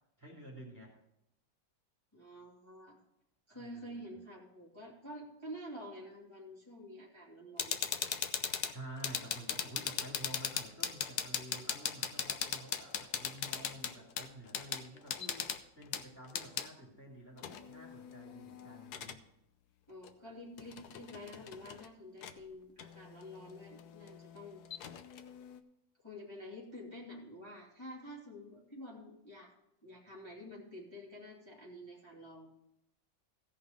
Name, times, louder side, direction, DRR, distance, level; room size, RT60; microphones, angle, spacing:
voice 1, 0.2-1.0 3.5-4.1 8.7-19.2, right 1 dB, 10° right, -4 dB, 2.8 m, -50 dB
voice 2, 2.1-3.0 3.5-7.9 19.9-24.9 26.0-29.5 29.8-32.5, equal, 15° left, -6 dB, 2.7 m, -49 dB
sound 1, 7.6-16.7 17.4-19.2 20.0-20.1 20.6-21.9 22.2-22.4 22.8-25.6, left 8 dB, 65° left, 1.2 m, -39 dB
16.5 x 5.5 x 5.2 m, 0.81 s
omnidirectional pair, 2.0 m